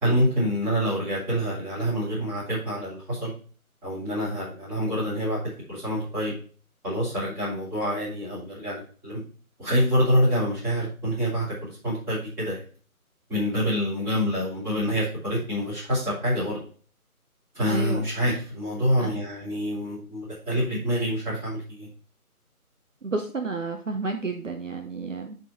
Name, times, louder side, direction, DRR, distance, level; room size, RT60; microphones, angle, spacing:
voice 1, 0.0-3.3 3.8-5.4 5.7-6.3 6.8-9.2 9.6-12.6 13.3-16.6 17.5-21.9, equal, 5° right, -12 dB, 2.5 m, -26 dB
voice 2, 17.7-18.0 19.0-19.1 23.0-25.4, right 3 dB, 55° right, 4 dB, 1.1 m, -31 dB
10.0 x 4.0 x 4.1 m, 0.42 s
figure-of-eight pair, 165°, 44 cm